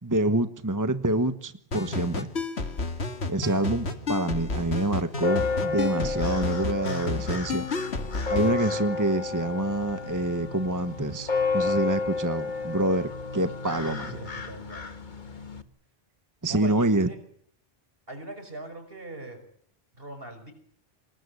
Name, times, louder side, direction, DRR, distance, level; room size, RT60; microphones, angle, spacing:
voice 1, 0.0-2.3 3.3-7.6 8.3-14.2 16.4-17.1, right 1 dB, 20° right, 10 dB, 1.3 m, -27 dB
sound 1, 1.7-8.6, left 3 dB, 90° left, 2.2 m, -31 dB
sound 2, 5.2-15.6, left 4 dB, 45° left, 1.6 m, -31 dB
voice 2, 13.9-14.9 16.5-17.2 18.1-19.4 20.0-20.5, right 1 dB, 65° right, 7 dB, 6.1 m, -41 dB
26.5 x 20.0 x 9.8 m, 0.63 s
omnidirectional pair, 1.1 m